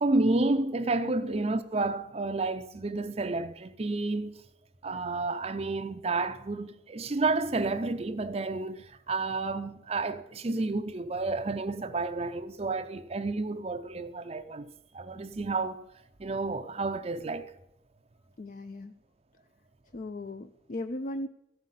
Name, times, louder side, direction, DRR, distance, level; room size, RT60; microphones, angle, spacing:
voice 1, 0.0-4.3 4.8-15.9 16.2-17.5, right 3 dB, 30° right, 0.5 m, -30 dB
voice 2, 18.4-18.9 19.9-21.3, left 1 dB, 45° left, 0.4 m, -37 dB
14.0 x 5.6 x 9.1 m
head